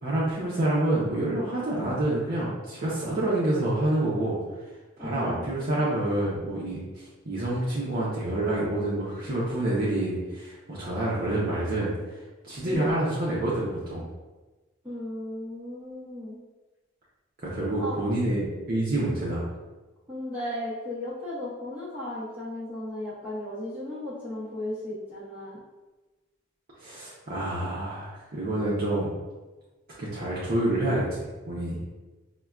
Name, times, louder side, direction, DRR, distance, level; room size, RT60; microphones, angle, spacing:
voice 1, 0.0-4.4 5.0-12.2 12.5-14.0 17.4-19.5 26.8-29.1 30.0-31.8, right 1 dB, 45° right, -7 dB, 0.6 m, -27 dB
voice 2, 5.0-5.9 12.6-13.0 14.8-16.4 17.8-18.0 20.1-25.6, left 1 dB, 10° right, -9 dB, 0.8 m, -36 dB
5.5 x 2.2 x 2.3 m, 1.2 s
head